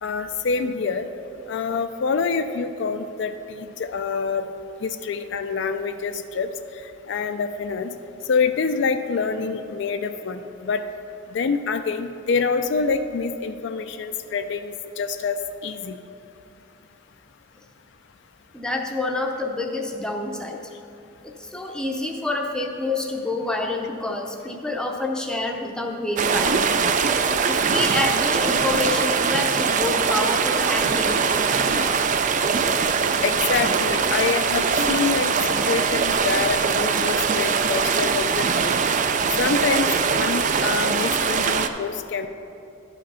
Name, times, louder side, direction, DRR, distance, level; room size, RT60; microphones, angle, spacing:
voice 1, 0.0-1.1 1.5-4.5 4.8-6.5 7.1-7.9 8.3-10.8 11.3-16.0 33.2-35.3 35.7-38.8 39.4-42.3, left 5 dB, 60° left, 8 dB, 0.4 m, -26 dB
voice 2, 18.5-20.6 21.2-26.7 27.5-31.5 31.9-32.0, left 2 dB, 5° left, 1 dB, 0.6 m, -27 dB
sound 1, 26.2-41.7, right 5 dB, 40° right, 0.4 m, -22 dB
11.5 x 5.1 x 5.5 m, 2.8 s
head